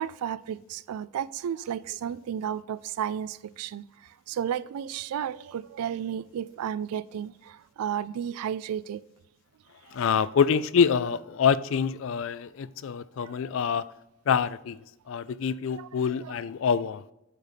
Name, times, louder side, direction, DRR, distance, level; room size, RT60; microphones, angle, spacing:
voice 1, 0.0-3.8 4.3-7.3 7.8-9.0 15.8-15.9, right 9 dB, 85° right, 0.3 m, -32 dB
voice 2, 9.9-13.8 14.3-14.8 15.1-17.0, left 6 dB, 60° left, 0.3 m, -26 dB
8.4 x 4.1 x 5.1 m
head